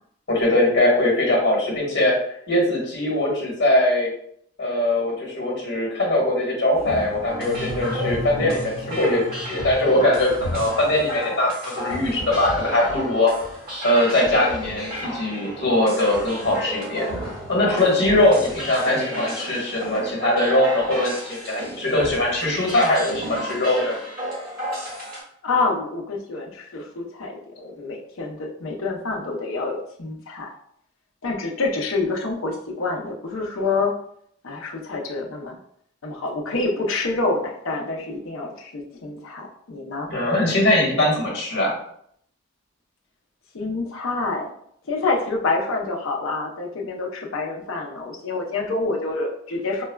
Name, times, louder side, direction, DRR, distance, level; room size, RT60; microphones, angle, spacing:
voice 1, 0.3-2.1 2.5-4.1 4.6-9.2 9.5-13.3 13.8-24.0 40.1-41.7, left 1 dB, 55° left, -3 dB, 1.2 m, -21 dB
sound 1, 6.7-25.2, equal, 45° right, 1.4 m, -32 dB
sound 2, 7.3-11.0, equal, 10° left, 0.5 m, -35 dB
voice 2, 25.4-30.5 31.2-33.9 34.4-35.6 36.0-40.1 43.5-44.5 44.9-49.8, left 3 dB, 75° left, 0 dB, 0.6 m, -27 dB
4.5 x 2.2 x 2.2 m, 0.68 s
head